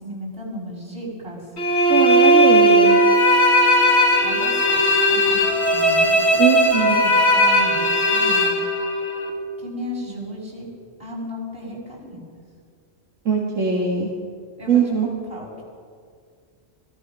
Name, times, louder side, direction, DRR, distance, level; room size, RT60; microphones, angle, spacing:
voice 1, 0.0-1.4 4.0-5.4 5.7-8.6 9.6-10.7 11.0-12.2 14.6-15.6, left 1 dB, 45° right, -2 dB, 7.2 m, -35 dB
sound 1, 1.6-9.3, equal, 55° left, 3.1 m, -17 dB
voice 2, 1.9-3.0 6.4-7.0 13.3-14.1 14.7-15.1, right 6 dB, 75° right, -3 dB, 2.6 m, -21 dB
26.5 x 19.5 x 6.4 m, 2.1 s
omnidirectional pair, 1.3 m